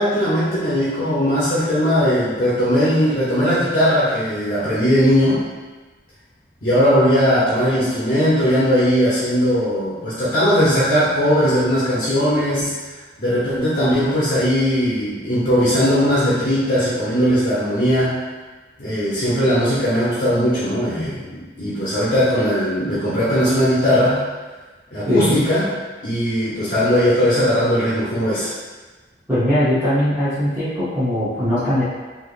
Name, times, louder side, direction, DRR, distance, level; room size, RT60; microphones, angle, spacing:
voice 1, 0.0-5.4 6.6-12.7 13.2-18.2 18.8-24.2 24.9-25.6 26.0-28.5, equal, 50° left, -11 dB, 0.9 m, -18 dB
voice 2, 25.1-25.4 29.3-31.8, left 1 dB, 10° right, -15 dB, 0.9 m, -20 dB
3.4 x 2.8 x 2.5 m, 1.3 s
head